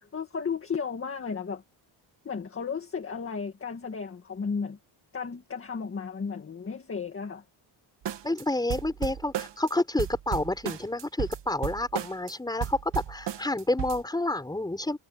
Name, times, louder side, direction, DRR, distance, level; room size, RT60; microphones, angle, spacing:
voice 1, 0.0-1.6 2.2-4.8 5.1-7.4, left 5 dB, 25° left, 1.9 m, -34 dB
sound 1, 8.1-8.4 8.7-9.7 10.0-12.3 12.6-14.0, right 10 dB, 60° right, 1.9 m, -33 dB
voice 2, 8.2-15.0, left 2 dB, 10° left, 4.7 m, -29 dB
wide cardioid pair, 175°, 49 cm